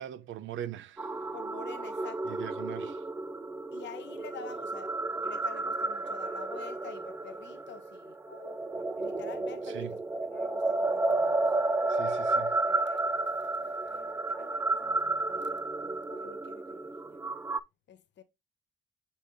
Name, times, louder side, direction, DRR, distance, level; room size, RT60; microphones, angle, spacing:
voice 1, 0.0-1.2 2.3-3.0 9.7-9.9 11.9-12.6, right 11 dB, 75° right, 0.6 m, -41 dB
sound 1, 1.0-17.6, right 2 dB, 10° right, 0.4 m, -32 dB
voice 2, 1.3-2.4 3.7-11.4 12.6-15.7 16.1-17.2 17.9-18.2, left 8 dB, 65° left, 0.9 m, -49 dB
6.4 x 5.5 x 2.7 m
cardioid pair, 90°, 20 cm